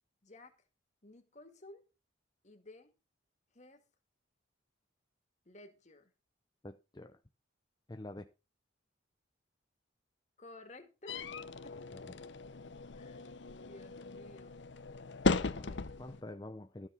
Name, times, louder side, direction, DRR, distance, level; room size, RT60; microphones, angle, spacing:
voice 1, 0.2-0.5 1.0-1.8 2.4-2.9 3.5-3.8 5.5-6.1 10.4-11.3 11.6-12.0 12.9-13.3 13.6-14.6 15.5-16.0, left 2 dB, 35° left, 2.1 m, -55 dB
voice 2, 6.6-7.2 7.9-8.3 15.5-16.9, left 1 dB, 20° left, 0.6 m, -47 dB
sound 1, 11.1-16.2, left 3 dB, 60° left, 0.7 m, -37 dB
13.0 x 7.2 x 5.7 m
head